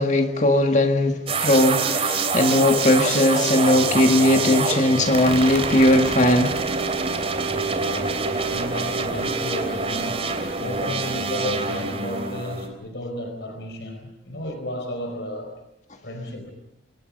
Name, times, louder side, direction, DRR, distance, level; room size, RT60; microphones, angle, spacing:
voice 1, 0.0-6.6, left 1 dB, 40° left, 1.8 m, -19 dB
sound 1, 1.3-12.7, right 4 dB, 30° right, 3.1 m, -25 dB
voice 2, 7.5-10.2 10.6-15.5 16.0-16.5, left 1 dB, 65° left, 4.5 m, -33 dB
29.5 x 24.5 x 5.4 m
head